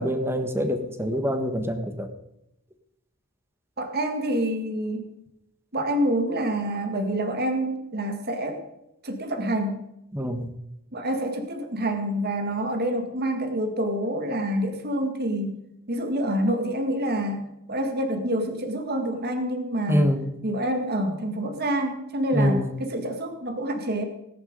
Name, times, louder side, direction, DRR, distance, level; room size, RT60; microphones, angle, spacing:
voice 1, 0.0-2.1 10.1-10.5 19.9-20.3 22.3-22.7, equal, 10° right, 8 dB, 1.4 m, -25 dB
voice 2, 3.8-5.1 5.7-8.6 9.0-9.8 10.9-15.6 15.9-20.1 20.4-24.0, right 1 dB, 45° right, 5 dB, 1.9 m, -27 dB
18.0 x 11.0 x 5.4 m, 0.85 s
head